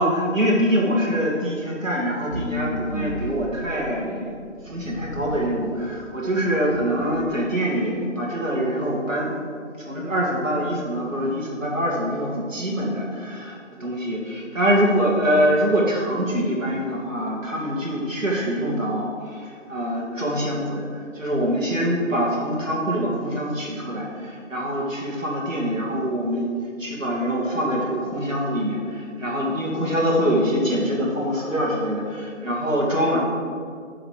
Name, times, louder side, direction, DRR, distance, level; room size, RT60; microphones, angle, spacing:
voice 1, 0.0-9.4 9.8-26.5 26.8-33.2, equal, 85° right, -4 dB, 2.4 m, -24 dB
sound 1, 2.3-3.8 4.5-5.5 5.9-6.0 6.5-7.3, left 1 dB, 85° left, 1.7 m, -33 dB
8.6 x 4.1 x 6.7 m, 2.1 s
figure-of-eight pair, 165°, 38 cm